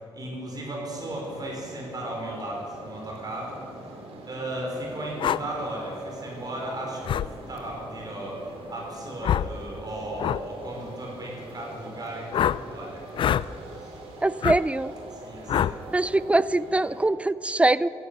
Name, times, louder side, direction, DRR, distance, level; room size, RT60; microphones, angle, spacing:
voice 1, 0.1-3.6 4.3-14.0 15.1-15.8, right 1 dB, 40° right, -1 dB, 4.6 m, -36 dB
sound 1, 0.9-17.1, right 2 dB, 70° right, 2.6 m, -44 dB
sound 2, 5.2-5.4 7.1-7.3 9.2-9.5 10.2-10.4 12.3-12.6 13.1-13.5 14.4-14.6 15.5-15.8, left 10 dB, 55° left, 0.4 m, -24 dB
voice 2, 14.2-14.9 15.9-17.9, right 2 dB, 10° right, 18 dB, 0.4 m, -23 dB
15.0 x 12.0 x 6.7 m, 2.7 s
supercardioid pair, 65°, 10 cm